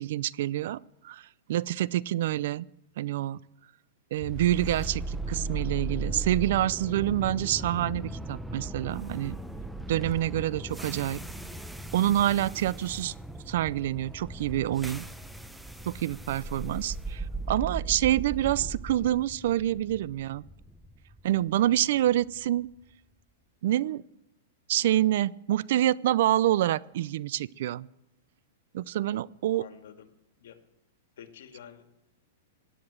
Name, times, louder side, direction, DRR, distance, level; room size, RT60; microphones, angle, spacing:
voice 1, 0.0-2.7 3.0-3.4 4.1-9.4 9.9-11.2 11.9-13.1 13.5-15.0 15.8-20.4 21.2-22.7 23.6-24.0 24.7-27.9 28.7-29.6, right 13 dB, 65° right, 22 dB, 0.5 m, -27 dB
sound 1, 4.2-22.3, right 2 dB, ahead, 0.8 m, -37 dB
voice 2, 29.5-30.1 30.4-30.6 31.2-31.9, left 9 dB, 75° left, 6 dB, 2.1 m, -48 dB
16.5 x 10.0 x 7.4 m, 0.88 s
hypercardioid pair, 140°, 0 cm